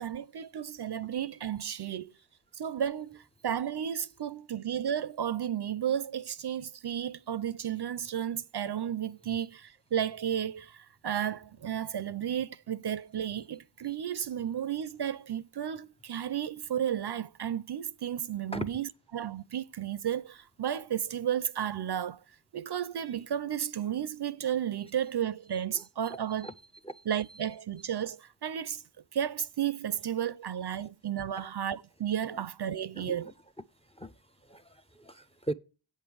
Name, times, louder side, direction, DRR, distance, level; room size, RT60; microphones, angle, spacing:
voice 1, 0.0-2.1 2.5-22.2 22.5-26.5 27.1-28.8 29.1-33.3, right 9 dB, 55° right, 0.5 m, -33 dB
voice 2, 25.7-26.2 26.4-26.5 26.8-27.0 31.4-31.5 32.9-33.3 34.0-34.1 34.5-35.5, right 1 dB, 15° left, 0.4 m, -39 dB
8.1 x 5.3 x 6.1 m
wide cardioid pair, 65°, 49 cm